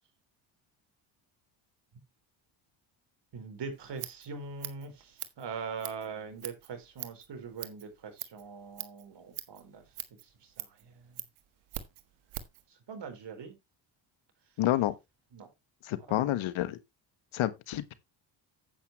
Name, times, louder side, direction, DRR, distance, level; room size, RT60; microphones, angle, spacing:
voice 1, 3.3-9.8 10.4-11.2 12.9-13.6 15.3-15.5 16.1-16.2, right 5 dB, 55° right, 4.5 m, -42 dB
Scissors, 3.7-12.6, right 14 dB, 80° right, 1.6 m, -44 dB
voice 2, 14.6-14.9 15.8-16.8 17.3-17.9, left 14 dB, 70° left, 1.5 m, -29 dB
10.0 x 8.5 x 3.1 m
supercardioid pair, 80°, 50 cm